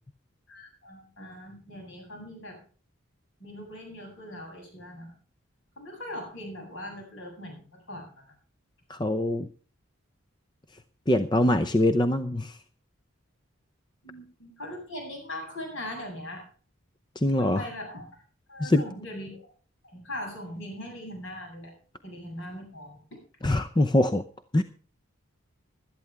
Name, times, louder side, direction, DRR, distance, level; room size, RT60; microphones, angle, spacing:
voice 1, 0.5-2.6 3.4-5.1 5.8-8.2 14.0-16.5 17.3-18.0 18.5-19.4 19.8-21.7 22.0-23.0, left 1 dB, 65° left, 2 dB, 7.9 m, -40 dB
voice 2, 8.9-9.5 11.1-12.6 17.2-17.6 18.6-18.8 23.4-24.2 24.5-24.6, left 1 dB, 20° left, 9 dB, 0.6 m, -23 dB
17.0 x 12.0 x 3.5 m, 0.40 s
head